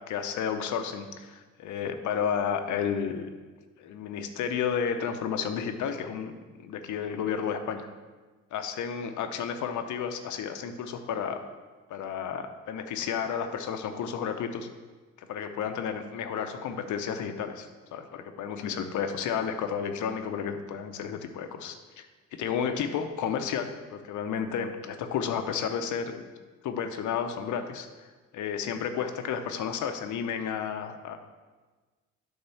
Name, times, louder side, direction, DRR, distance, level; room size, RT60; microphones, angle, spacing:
voice 1, 0.1-3.3 3.8-7.9 8.5-11.4 11.9-14.7 15.2-22.1 22.3-26.2 26.6-27.9 28.3-31.2, left 7 dB, 75° left, 7 dB, 0.7 m, -32 dB
8.7 x 3.6 x 5.6 m, 1.3 s
cardioid pair, 90°, 30 cm